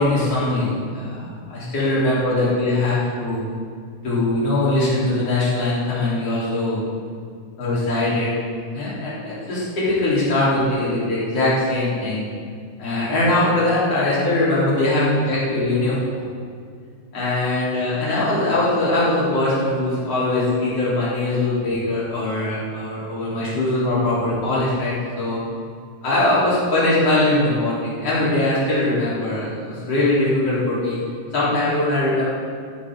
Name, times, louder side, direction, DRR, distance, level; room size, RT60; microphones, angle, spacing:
voice 1, 0.0-3.4 4.0-6.8 7.6-8.3 8.7-12.3 12.8-16.3 17.1-25.4 26.0-31.0 31.3-32.3, left 2 dB, 45° left, -9 dB, 4.6 m, -21 dB
15.0 x 11.0 x 3.8 m, 2.1 s
omnidirectional pair, 3.9 m